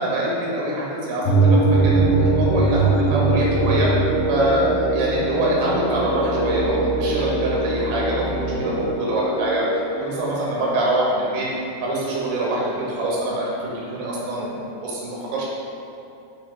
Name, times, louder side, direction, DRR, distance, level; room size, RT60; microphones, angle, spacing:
voice 1, 0.0-3.9 4.3-9.6 10.0-15.4, right 1 dB, 90° right, -5 dB, 2.8 m, -24 dB
sound 1, 1.2-10.6, right 2 dB, 70° left, 2.7 m, -22 dB
sound 2, 1.7-8.9, right 2 dB, 90° left, 1.9 m, -31 dB
6.2 x 3.1 x 2.4 m, 2.6 s
omnidirectional pair, 4.9 m